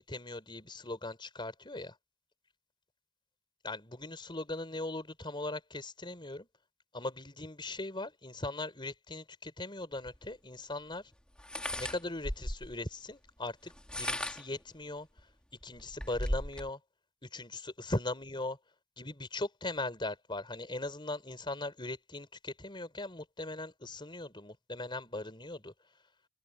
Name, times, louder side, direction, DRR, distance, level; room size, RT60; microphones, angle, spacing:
voice 1, 0.0-1.9 3.6-6.5 6.9-11.0 11.8-15.1 15.6-16.8 17.3-18.6 19.0-25.7, left 2 dB, 20° left, 4.3 m, -39 dB
sound 1, 10.1-10.2 11.4-12.8 13.7-14.6 15.2-15.3 15.6-16.7, left 1 dB, 5° left, 2.5 m, -36 dB
head